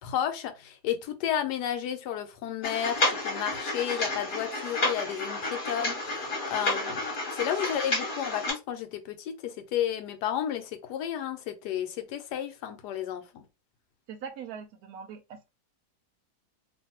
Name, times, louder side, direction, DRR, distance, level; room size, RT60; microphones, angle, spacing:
voice 1, 0.0-7.1 7.3-13.4, left 10 dB, 80° left, 1.2 m, -32 dB
sound 1, 2.6-8.5, left 2 dB, 40° left, 0.9 m, -31 dB
voice 2, 14.1-15.5, right 7 dB, 70° right, 1.0 m, -41 dB
2.6 x 2.5 x 2.8 m
omnidirectional pair, 1.7 m